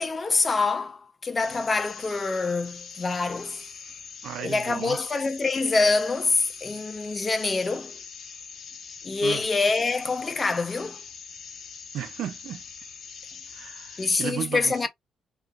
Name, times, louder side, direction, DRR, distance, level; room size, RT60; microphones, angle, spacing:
voice 1, 0.0-3.6 4.4-7.9 9.0-11.0 14.0-14.9, left 3 dB, 30° left, 0.8 m, -25 dB
sound 1, 1.4-14.2, left 5 dB, 55° left, 1.2 m, -43 dB
voice 2, 4.2-5.0 9.2-9.4 11.9-12.6 13.5-14.9, right 10 dB, 75° right, 0.8 m, -35 dB
3.2 x 3.1 x 2.5 m
cardioid pair, 90°, 0 cm